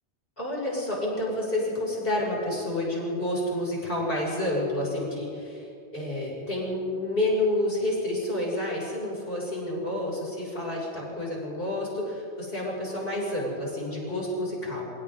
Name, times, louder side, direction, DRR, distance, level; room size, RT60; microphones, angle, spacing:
voice 1, 0.4-5.7 5.9-14.9, left 1 dB, 50° left, -4 dB, 6.9 m, -29 dB
27.5 x 25.5 x 3.9 m, 2.6 s
omnidirectional pair, 1.2 m